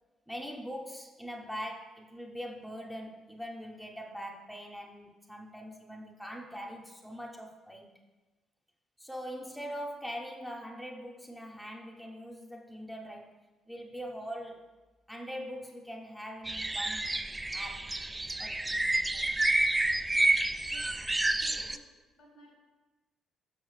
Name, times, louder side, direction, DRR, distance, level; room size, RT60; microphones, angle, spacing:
voice 1, 0.3-7.9 9.0-13.4 13.7-14.6 15.1-17.1 17.5-18.0 18.4-19.3, equal, ahead, 1 dB, 0.7 m, -42 dB
sound 1, 16.5-21.8, right 2 dB, 15° right, 0.3 m, -29 dB
voice 2, 20.7-21.1 21.4-21.8 22.2-22.6, equal, 65° left, 1 dB, 1.6 m, -55 dB
6.3 x 6.1 x 3.2 m, 1.2 s
hypercardioid pair, 45°, 0 cm